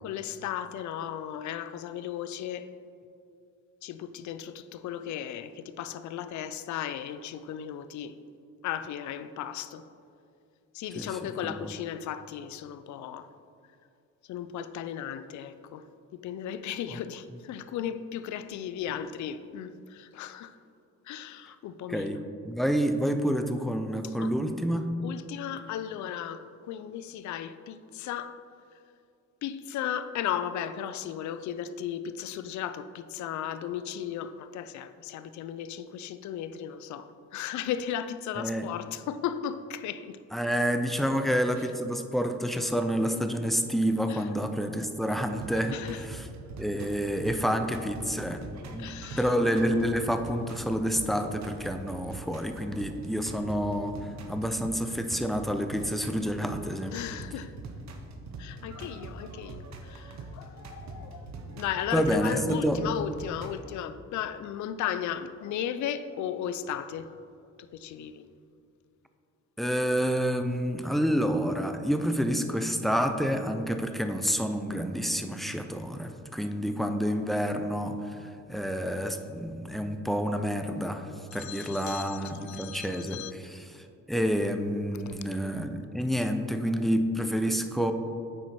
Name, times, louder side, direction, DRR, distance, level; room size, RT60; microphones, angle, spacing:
voice 1, 0.0-2.7 3.8-8.1 8.6-9.9 10.7-13.3 14.3-15.9 16.1-20.6 21.1-22.2 24.0-24.3 25.0-28.4 29.4-40.2 44.1-44.3 45.7-46.0 48.8-49.3 56.8-57.5 58.4-67.1 67.6-68.3 81.3-83.3 85.1-85.2, left 9 dB, 70° left, 0.5 m, -36 dB
voice 2, 21.9-22.2 22.5-24.9 38.4-38.7 40.3-46.3 46.6-48.4 48.7-48.9 49.2-56.9 61.9-62.8 69.6-87.9, equal, ahead, 0.5 m, -29 dB
sound 1, 45.1-63.6, right 3 dB, 65° right, 0.9 m, -43 dB
9.0 x 4.5 x 4.3 m
cardioid pair, 90°, 30 cm